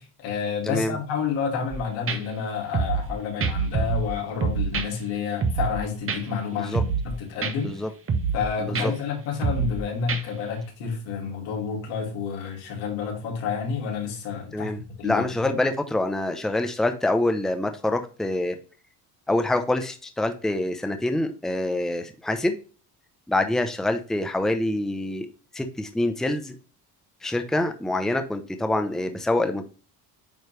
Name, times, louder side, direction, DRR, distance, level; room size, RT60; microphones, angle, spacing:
voice 1, 0.0-7.8 8.3-14.7 15.0-15.6, left 6 dB, 90° left, 0 dB, 2.6 m, -29 dB
voice 2, 0.6-1.0 6.6-6.8 7.6-7.9 8.6-8.9 14.5-18.6 19.3-22.6 23.3-25.3 25.5-26.5 27.2-29.7, left 1 dB, ahead, 6 dB, 0.7 m, -26 dB
sound 1, 1.7-1.8 2.1-2.2 2.7-3.1 3.4-4.1 4.4-4.9 5.4-5.8 6.1-6.2 6.7-7.1 7.4-7.5 8.1-8.5 8.8-8.9 9.4-9.8 10.1-10.2, right 5 dB, 30° right, 1.1 m, -25 dB
9.0 x 3.3 x 3.3 m, 0.37 s
cardioid pair, 100°, 42 cm